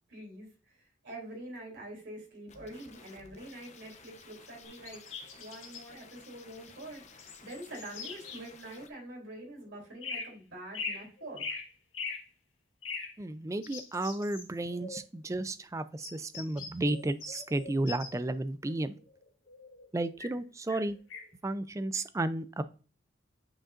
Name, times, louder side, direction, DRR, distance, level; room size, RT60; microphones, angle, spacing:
voice 1, 0.1-0.7 1.0-5.0 5.4-11.4, right 1 dB, 70° right, 0 dB, 3.3 m, -45 dB
sound 1, 2.5-8.9, left 5 dB, 35° left, 0.7 m, -55 dB
sound 2, 4.6-5.8 7.2-8.5 10.0-10.3 10.7-12.3 12.8-13.1 13.6-15.0 16.0-18.2 18.7-20.4 20.7-21.3, left 4 dB, 85° left, 1.8 m, -41 dB
voice 2, 13.2-19.0 19.9-21.0 21.4-22.6, right 2 dB, 15° right, 12 dB, 0.3 m, -33 dB
8.7 x 4.9 x 2.5 m, 0.36 s
head